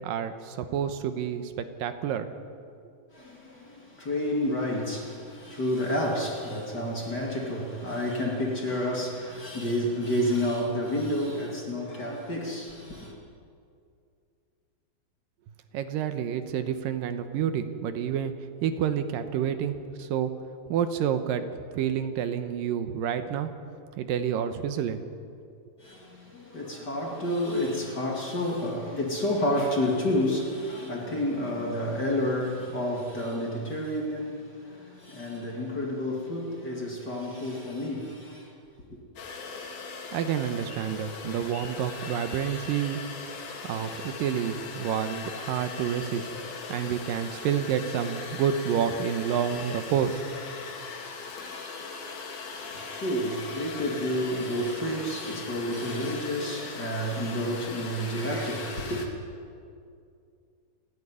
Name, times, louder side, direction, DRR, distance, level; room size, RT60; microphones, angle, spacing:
voice 1, 0.0-2.3 15.7-18.3 18.6-20.3 20.7-21.4 21.7-23.5 24.0-25.0 40.1-43.0 43.6-46.3 46.7-50.2, right 8 dB, 80° right, 2.6 m, -29 dB
voice 2, 3.1-13.2 25.8-38.5 52.5-59.1, left 1 dB, 30° left, 2.5 m, -30 dB
sound 1, 39.2-59.1, left 4 dB, 80° left, 4.0 m, -39 dB
29.0 x 10.5 x 9.7 m
omnidirectional pair, 4.1 m